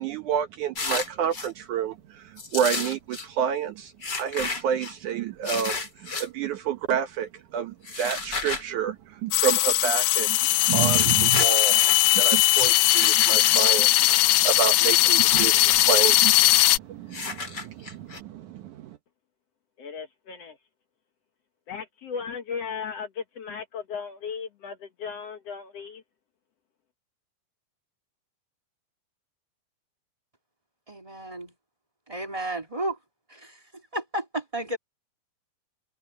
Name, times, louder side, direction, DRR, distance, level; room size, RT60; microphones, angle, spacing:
voice 1, 0.0-3.9 4.2-11.9 12.1-19.0, right 8 dB, 70° right, 2.1 m, -29 dB
sound 1, 0.7-1.5 2.4-3.3 4.0-4.9 5.4-6.3 7.8-8.6 9.4-9.6 10.6-12.0 12.8-14.2 15.1-15.8 16.1-16.2 17.1-18.2, left 4 dB, 30° left, 3.5 m, -33 dB
sound 2, 9.3-16.8, left 17 dB, 85° left, 2.7 m, -19 dB
voice 2, 19.8-20.6 21.7-26.0, left 6 dB, 65° left, 1.6 m, -36 dB
voice 3, 30.9-31.5 32.1-33.0 33.3-33.6 33.9-34.8, right 1 dB, 15° right, 1.3 m, -32 dB
omnidirectional pair, 4.3 m